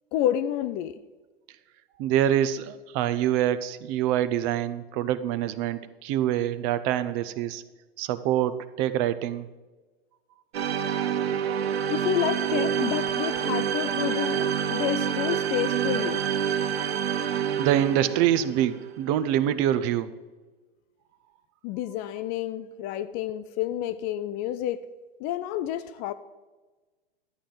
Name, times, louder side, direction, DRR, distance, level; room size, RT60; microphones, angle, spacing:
voice 1, 0.1-1.0 11.9-16.3 21.6-24.9 25.2-26.1, left 11 dB, 30° left, 0.4 m, -29 dB
voice 2, 2.0-7.6 8.0-9.4 17.6-20.1, right 11 dB, 40° right, 0.6 m, -25 dB
sound 1, 10.5-19.0, right 8 dB, 80° right, 0.7 m, -27 dB
11.0 x 8.7 x 3.9 m
hypercardioid pair, 110°, 30 cm